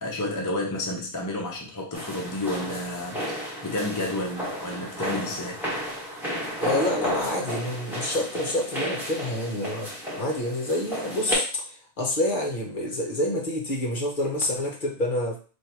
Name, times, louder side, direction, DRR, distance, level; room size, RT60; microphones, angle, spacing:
voice 1, 0.0-5.6, left 1 dB, 20° left, -2 dB, 0.5 m, -31 dB
sound 1, 1.9-11.4, equal, ahead, 1.3 m, -33 dB
voice 2, 6.6-15.4, left 1 dB, 40° left, -1 dB, 1.0 m, -28 dB
3.2 x 2.7 x 4.4 m, 0.39 s
omnidirectional pair, 1.4 m